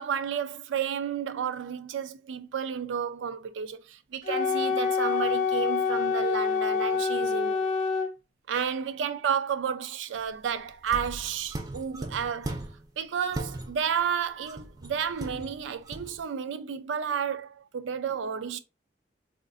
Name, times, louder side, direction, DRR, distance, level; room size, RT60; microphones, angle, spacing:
voice 1, 0.0-7.7 8.5-12.6 13.0-18.6, right 7 dB, 90° right, 0.4 m, -31 dB
Wind instrument woodwind instrument, 4.2-8.1, left 5 dB, 45° left, 0.4 m, -26 dB
sound 1, 10.8-12.9 13.3-14.0 14.4-16.2, right 1 dB, 20° right, 0.4 m, -38 dB
3.6 x 2.4 x 2.5 m
head